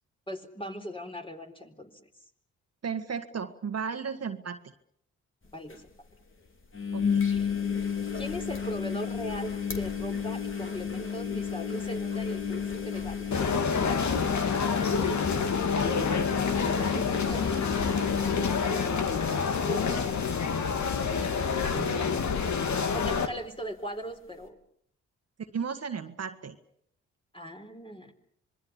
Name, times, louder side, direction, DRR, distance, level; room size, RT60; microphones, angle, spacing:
voice 1, 0.3-1.9 5.5-5.9 7.3-7.5 8.2-13.3 14.7-15.2 16.5-17.7 19.5-20.2 21.2-21.3 22.7-24.6 27.3-28.1, equal, 15° left, 5 dB, 4.1 m, -39 dB
voice 2, 2.8-4.7 6.9-7.2 21.7-22.2 25.5-26.6, right 6 dB, 50° right, 7 dB, 1.7 m, -35 dB
sound 1, 5.4-5.5 5.7-5.8 6.7-19.8 20.2-20.6 20.9-21.0 22.8-22.9, left 6 dB, 40° left, 3.7 m, -32 dB
sound 2, 13.3-23.3, left 5 dB, 60° left, 2.4 m, -28 dB
26.0 x 21.5 x 7.2 m, 0.70 s
supercardioid pair, 50°, 33 cm